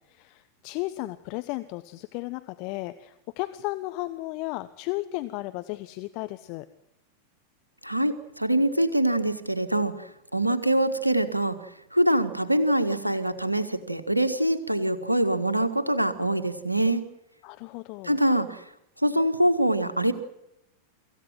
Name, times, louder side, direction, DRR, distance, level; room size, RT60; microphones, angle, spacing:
voice 1, 0.0-6.7 17.4-18.2, left 19 dB, 45° left, 12 dB, 1.0 m, -34 dB
voice 2, 7.8-10.1 10.3-11.6 11.9-17.0 18.0-18.6 19.0-20.1, right 1 dB, 85° right, 9 dB, 1.7 m, -24 dB
25.0 x 15.5 x 7.6 m, 0.83 s
figure-of-eight pair, 90°, 0 cm